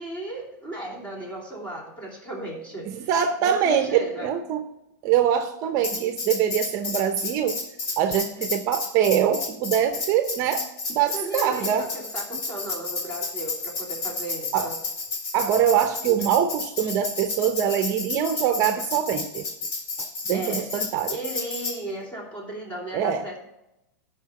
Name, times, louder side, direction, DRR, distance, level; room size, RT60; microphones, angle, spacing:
voice 1, 0.0-3.1 3.4-4.3 11.1-14.7 20.3-20.7 21.1-23.4, right 2 dB, 15° left, -2 dB, 3.0 m, -35 dB
voice 2, 2.9-4.6 5.0-7.6 8.0-10.6 10.9-11.9 14.5-14.7 15.3-19.4 20.0-21.2 22.9-23.2, right 9 dB, 35° right, 8 dB, 0.6 m, -23 dB
Tambourine, 5.8-21.8, left 3 dB, 60° left, 3.4 m, -31 dB
12.0 x 4.9 x 5.7 m, 0.89 s
supercardioid pair, 150°, 10 cm